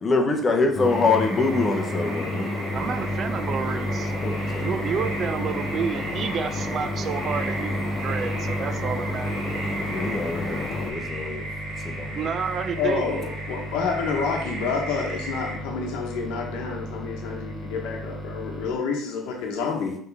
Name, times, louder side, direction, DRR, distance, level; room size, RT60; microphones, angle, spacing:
voice 1, 0.0-2.5 4.2-4.8 9.9-11.5 11.8-12.3, left 3 dB, 30° left, 4 dB, 0.7 m, -25 dB
sound 1, 0.7-10.9, left 1 dB, 45° left, 1.0 m, -30 dB
sound 2, 0.9-15.6, right 2 dB, 80° right, 1.5 m, -37 dB
sound 3, 2.7-18.7, equal, ahead, 1.2 m, -37 dB
voice 2, 2.7-4.1 4.6-9.5 12.1-13.2, right 6 dB, 45° right, 9 dB, 0.3 m, -30 dB
voice 3, 12.7-20.0, left 5 dB, 85° left, 1 dB, 0.9 m, -28 dB
4.5 x 3.2 x 3.3 m, 0.66 s
cardioid pair, 115°, 0 cm